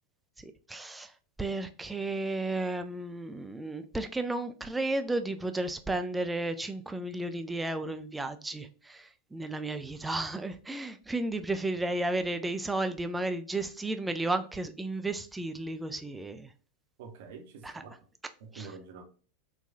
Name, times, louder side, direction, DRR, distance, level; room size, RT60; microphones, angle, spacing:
voice 1, 0.7-1.1 1.4-16.5 17.6-17.8 18.5-18.7, right 2 dB, 10° right, 0.3 m, -33 dB
voice 2, 17.0-17.9 18.4-19.0, right 5 dB, 50° right, 0.7 m, -46 dB
4.1 x 2.3 x 2.5 m
figure-of-eight pair, 90°, 0 cm